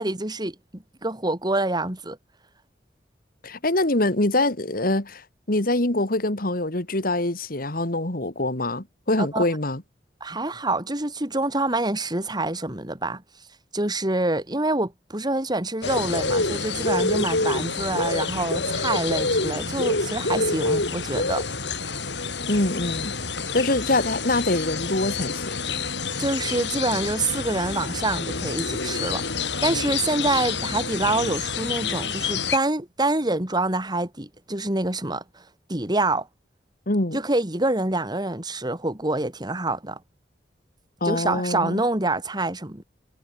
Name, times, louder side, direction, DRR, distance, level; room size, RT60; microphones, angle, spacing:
voice 1, 0.0-2.2 9.2-9.5 10.2-13.2 13.7-21.4 26.2-35.2 35.7-36.3 37.1-40.0 41.0-42.8, right 2 dB, 25° right, 3.1 m, -26 dB
voice 2, 3.4-9.8 22.5-23.1 23.5-25.5 36.9-37.2 41.0-41.8, left 2 dB, 55° left, 2.7 m, -24 dB
sound 1, 15.8-32.6, left 4 dB, 75° left, 6.3 m, -27 dB
head